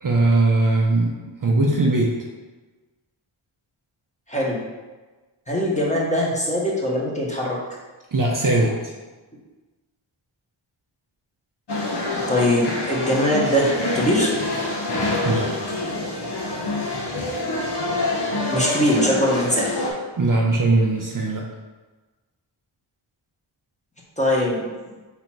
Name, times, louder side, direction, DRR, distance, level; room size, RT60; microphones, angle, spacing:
voice 1, 0.0-1.1 1.4-2.1 8.1-8.9 15.2-15.5 20.2-21.4, right 2 dB, 40° right, -1 dB, 0.7 m, -19 dB
voice 2, 4.3-4.6 5.5-7.6 12.3-14.3 18.5-19.6 24.2-24.6, equal, 15° left, -4 dB, 1.3 m, -21 dB
sound 1, 11.7-19.9, left 2 dB, 55° left, 0.9 m, -26 dB
3.9 x 2.9 x 4.5 m, 1.2 s
cardioid pair, 50°, 48 cm